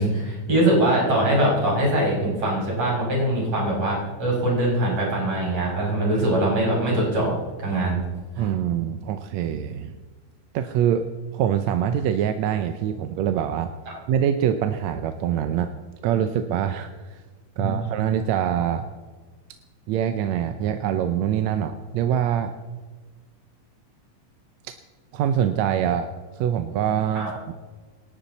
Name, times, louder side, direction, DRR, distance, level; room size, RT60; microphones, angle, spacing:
voice 1, 0.0-8.0 8.4-8.5 17.6-17.8 27.1-27.3, right 1 dB, 55° right, -4 dB, 7.1 m, -22 dB
voice 2, 8.4-10.0 10.5-11.1 11.3-13.7 14.1-15.7 16.0-17.2 17.6-18.9 19.9-22.5 24.7-24.8 25.1-27.5, right 9 dB, 75° right, 8 dB, 1.9 m, -24 dB
27.0 x 11.5 x 4.1 m, 1.4 s
omnidirectional pair, 3.4 m